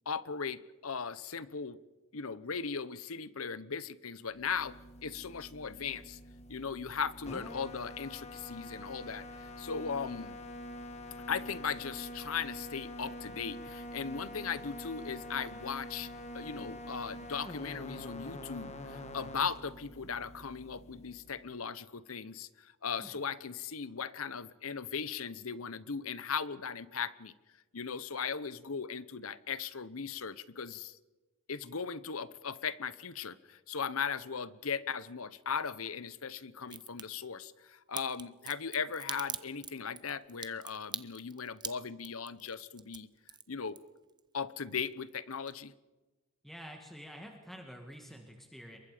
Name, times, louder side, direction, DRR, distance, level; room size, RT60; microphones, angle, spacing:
voice 1, 0.1-1.8 2.1-6.2 6.5-10.3 11.3-16.1 16.3-27.3 27.7-31.0 31.5-43.1 43.5-43.8 44.3-45.7, left 6 dB, 75° left, 16 dB, 0.9 m, -38 dB
sound 1, 4.3-21.6, left 1 dB, 30° left, 1.6 m, -46 dB
Crack, 36.6-37.0 37.9-44.2 44.5-45.2 45.5-45.6, right 8 dB, 20° right, 0.7 m, -42 dB
voice 2, 46.4-48.8, equal, ahead, 2 dB, 2.0 m, -48 dB
27.5 x 23.0 x 5.1 m, 1.2 s
head